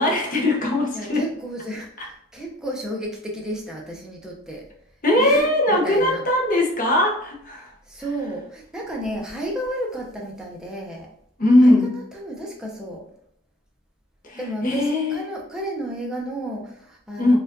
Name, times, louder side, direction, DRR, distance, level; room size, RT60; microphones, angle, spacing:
voice 1, 0.0-1.2 2.0-2.1 5.0-7.7 11.4-11.9 14.2-15.2 17.2-17.4, left 1 dB, 40° left, 0 dB, 0.8 m, -20 dB
voice 2, 0.9-4.7 5.2-6.2 7.9-11.1 11.6-13.0 14.4-17.4, right 1 dB, 5° right, -2 dB, 0.6 m, -32 dB
4.3 x 2.4 x 2.6 m, 0.71 s
head